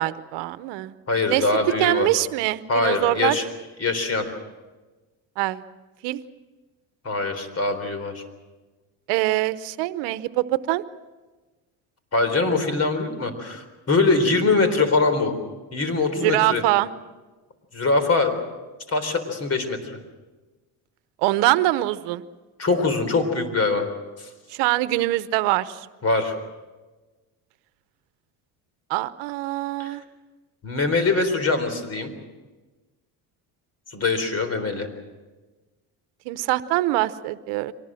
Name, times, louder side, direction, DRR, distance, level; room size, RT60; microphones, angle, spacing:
voice 1, 0.0-0.9 1.3-1.4 1.8-3.4 5.4-5.6 6.0-6.2 9.1-10.8 16.1-16.9 21.2-22.2 24.5-25.9 28.9-30.0 36.2-37.7, right 17 dB, 80° right, 14 dB, 1.0 m, -23 dB
voice 2, 1.1-2.1 2.7-3.4 3.8-4.3 7.0-8.2 12.1-15.4 15.7-16.6 17.7-18.4 18.9-20.0 22.6-23.9 24.2-24.3 26.0-26.3 29.8-30.0 30.6-32.1 33.9-34.9, left 3 dB, 35° left, 9 dB, 4.0 m, -23 dB
24.5 x 19.0 x 7.7 m, 1.2 s
cardioid pair, 105°, 41 cm